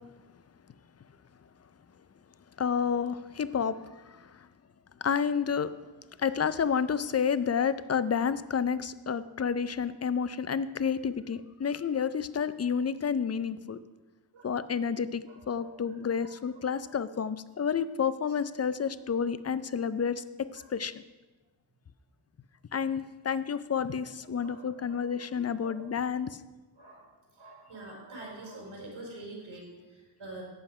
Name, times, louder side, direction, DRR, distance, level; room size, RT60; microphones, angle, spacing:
voice 1, 2.6-4.5 5.0-5.7 6.2-13.8 14.4-20.2 20.5-21.0 22.7-26.4, left 7 dB, 35° left, 15 dB, 0.5 m, -30 dB
voice 2, 15.3-15.7 16.2-16.3 16.8-16.9 20.6-20.7 24.4-25.0 25.6-25.8 26.8-27.1 27.4-30.4, right 2 dB, 70° right, -2 dB, 4.2 m, -46 dB
11.5 x 7.7 x 4.9 m, 1.2 s
cardioid pair, 70°, 48 cm